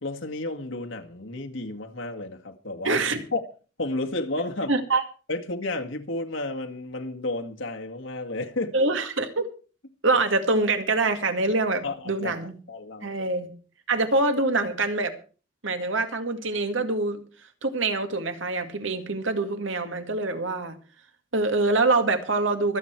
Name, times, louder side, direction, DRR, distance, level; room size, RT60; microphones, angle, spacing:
voice 1, 0.0-3.1 3.3-3.4 3.8-4.7 5.3-8.9 11.8-12.4 12.7-13.3, left 2 dB, 75° left, 2.0 m, -32 dB
voice 2, 2.8-3.2 4.7-5.0 8.7-9.5 10.0-12.5 13.0-13.5 13.9-15.1 15.6-17.2 17.6-20.8 21.3-22.8, right 3 dB, 75° right, 2.2 m, -25 dB
24.5 x 8.3 x 4.6 m
head